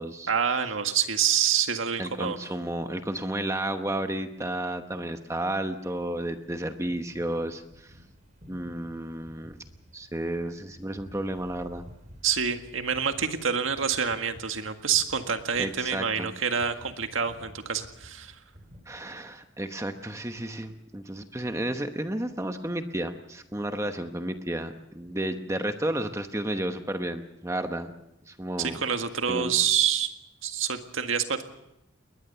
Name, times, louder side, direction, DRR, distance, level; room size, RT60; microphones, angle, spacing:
voice 1, 0.3-2.4 12.2-18.3 28.6-30.1 30.4-31.4, right 7 dB, 80° right, 7 dB, 1.8 m, -27 dB
voice 2, 2.0-7.9 8.5-9.6 9.9-11.8 15.6-16.3 18.9-27.9 28.3-28.8 29.3-29.5, right 1 dB, 15° right, 7 dB, 1.0 m, -32 dB
sound 1, 6.0-18.8, equal, 35° right, 4.5 m, -52 dB
21.0 x 20.5 x 6.9 m, 0.87 s
head